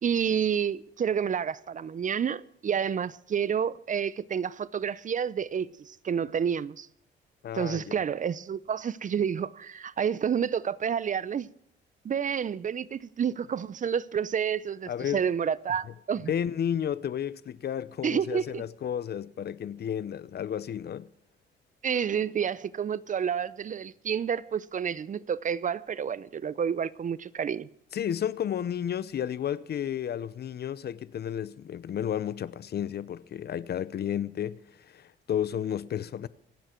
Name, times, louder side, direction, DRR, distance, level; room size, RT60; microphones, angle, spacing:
voice 1, 0.0-6.9 7.5-11.5 12.0-16.3 18.0-18.6 21.8-27.7, right 7 dB, 40° right, 0.6 m, -29 dB
voice 2, 7.4-8.0 14.9-15.3 16.3-21.1 27.9-36.3, left 9 dB, 55° left, 0.8 m, -32 dB
27.0 x 9.1 x 4.5 m
cardioid pair, 90°, 20 cm